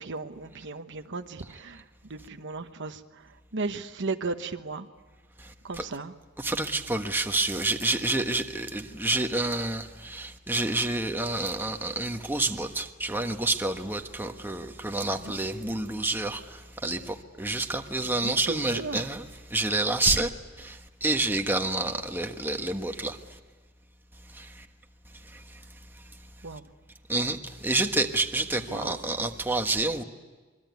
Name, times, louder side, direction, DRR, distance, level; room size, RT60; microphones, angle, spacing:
voice 1, 0.0-1.8 2.1-4.9 5.6-6.1 15.1-15.3 18.1-19.1 26.4-26.6 28.7-29.0, right 3 dB, 60° right, 1.1 m, -36 dB
voice 2, 6.4-19.2 19.5-20.3 20.6-23.2 24.3-24.6 27.1-30.0, right 2 dB, 10° right, 1.3 m, -28 dB
26.5 x 22.5 x 9.4 m
head